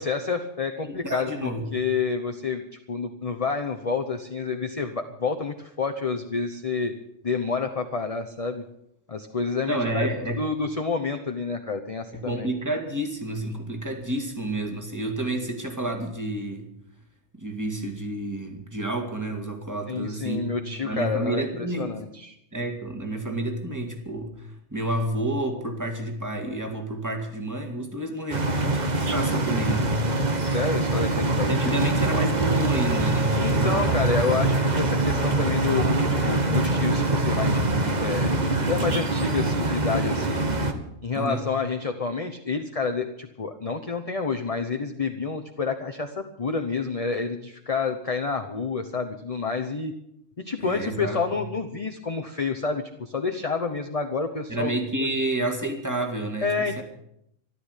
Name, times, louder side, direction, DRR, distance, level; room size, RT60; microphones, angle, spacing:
voice 1, 0.0-6.9 7.2-8.6 9.1-10.1 10.4-12.5 19.9-22.4 30.4-31.8 33.3-38.3 38.7-40.5 41.0-49.9 50.4-54.7 55.0-55.1 56.4-56.8, left 4 dB, 30° left, 6 dB, 1.0 m, -29 dB
voice 2, 0.8-1.7 9.7-10.4 12.1-16.7 17.3-20.5 20.8-21.9 22.5-30.0 31.5-34.2 41.2-41.4 50.6-51.2 54.5-56.8, right 1 dB, 15° right, 4 dB, 2.3 m, -30 dB
sound 1, 28.3-40.7, right 2 dB, 35° right, 1.5 m, -24 dB
13.5 x 12.5 x 8.3 m, 0.76 s
omnidirectional pair, 1.3 m